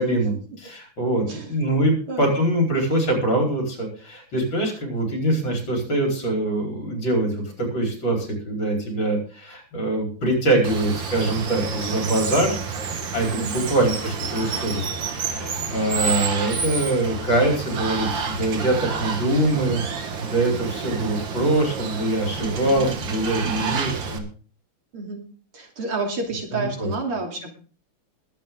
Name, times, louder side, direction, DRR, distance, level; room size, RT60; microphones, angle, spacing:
voice 1, 0.0-12.6 13.1-24.2 26.5-26.9, right 1 dB, 60° left, 1 dB, 5.2 m, -24 dB
Water, 10.6-24.2, right 5 dB, 65° right, 2.2 m, -29 dB
voice 2, 13.4-13.7 22.4-23.2 23.4-23.8 24.9-25.2 25.5-27.5, right 3 dB, 90° right, 2 dB, 4.0 m, -30 dB
21.0 x 8.4 x 3.8 m, 0.40 s
omnidirectional pair, 2.3 m